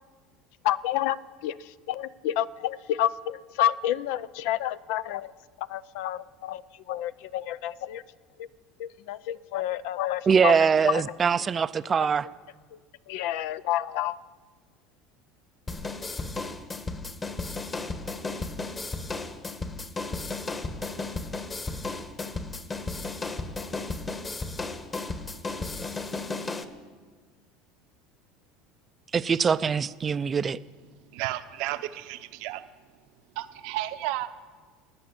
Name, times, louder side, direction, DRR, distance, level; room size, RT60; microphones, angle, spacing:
voice 1, 0.6-5.3 5.6-8.0 8.4-8.5 8.8-10.6 10.9-11.2 12.7-12.8 13.1-14.2, left 12 dB, 70° left, 16 dB, 0.5 m, -29 dB
voice 2, 10.3-12.3 29.1-30.6, right 6 dB, 25° right, 14 dB, 0.4 m, -23 dB
sound 1, 15.7-26.6, left 3 dB, 20° left, 1.2 m, -34 dB
voice 3, 31.1-32.6 33.4-34.3, right 15 dB, 70° right, 10 dB, 0.8 m, -32 dB
16.0 x 9.9 x 8.7 m, 1.5 s
supercardioid pair, 125°, 0 cm